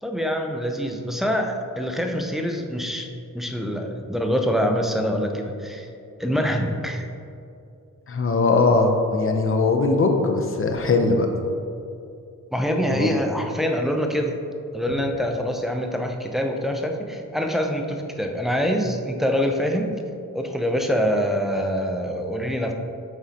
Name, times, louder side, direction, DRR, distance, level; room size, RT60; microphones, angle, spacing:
voice 1, 0.0-3.1 3.3-5.9 6.2-7.0 12.5-14.4 14.7-19.9 20.3-22.7, equal, ahead, 3 dB, 0.5 m, -25 dB
voice 2, 8.1-11.3 12.9-13.2, left 3 dB, 40° left, 3 dB, 0.7 m, -20 dB
7.7 x 4.8 x 2.8 m, 2.6 s
wide cardioid pair, 110°, 33 cm